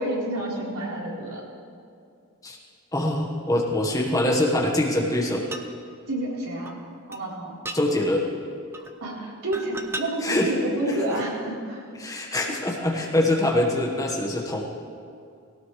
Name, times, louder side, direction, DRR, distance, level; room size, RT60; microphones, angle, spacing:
voice 1, 0.0-1.4 6.1-6.8 7.1-7.5 8.8-11.8, right 1 dB, 80° right, -5 dB, 3.9 m, -29 dB
voice 2, 2.9-5.4 7.7-8.3 10.2-11.0 12.0-14.6, left 1 dB, 15° left, -1 dB, 1.4 m, -24 dB
sound 1, 5.5-5.7 6.7-6.8 7.1-7.2 7.7-7.8 8.7-9.0 9.5-10.1 11.0-11.1, right 2 dB, 10° right, 0.6 m, -34 dB
19.0 x 17.5 x 3.3 m, 2.4 s
head